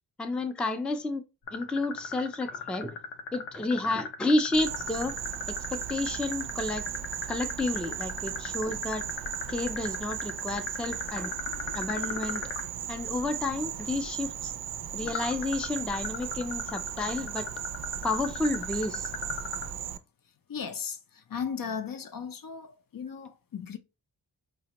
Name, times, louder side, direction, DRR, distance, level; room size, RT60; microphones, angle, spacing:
voice 1, 0.2-1.2 1.5-3.0 3.3-5.1 5.5-6.9 7.2-9.0 9.5-11.3 11.7-12.5 12.9-14.5 14.9-17.5 18.0-19.1, left 2 dB, 5° left, 0.4 m, -31 dB
sound 1, 1.5-12.6 15.1-19.7, left 4 dB, 85° left, 0.7 m, -37 dB
Insect, 4.5-20.0, right 9 dB, 60° right, 0.5 m, -36 dB
voice 2, 20.5-23.8, left 6 dB, 50° left, 0.5 m, -36 dB
4.9 x 2.1 x 2.8 m
cardioid pair, 70°, 43 cm